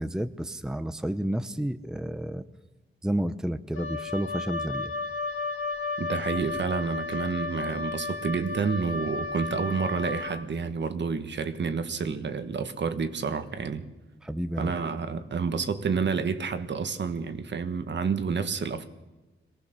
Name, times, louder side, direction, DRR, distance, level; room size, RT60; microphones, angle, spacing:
voice 1, 0.0-2.4 3.0-4.9 14.2-14.7, right 1 dB, 5° right, 0.6 m, -31 dB
Wind instrument woodwind instrument, 3.7-10.4, left 3 dB, 75° left, 2.5 m, -33 dB
voice 2, 6.0-13.9 14.6-18.9, right 5 dB, 60° right, 1.4 m, -29 dB
23.0 x 18.5 x 6.8 m
wide cardioid pair, 140°, 21 cm